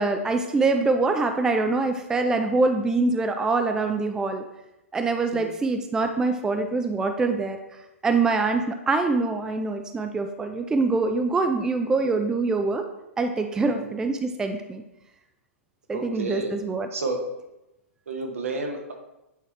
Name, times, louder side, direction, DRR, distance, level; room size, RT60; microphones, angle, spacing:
voice 1, 0.0-4.4 4.9-12.9 13.2-14.8 15.9-16.9, right 3 dB, 10° right, 6 dB, 0.3 m, -24 dB
voice 2, 13.6-13.9 15.9-16.5 16.9-17.2 18.1-18.9, right 3 dB, 70° right, 3 dB, 1.2 m, -31 dB
8.3 x 3.5 x 3.3 m, 0.93 s
figure-of-eight pair, 115°, 8 cm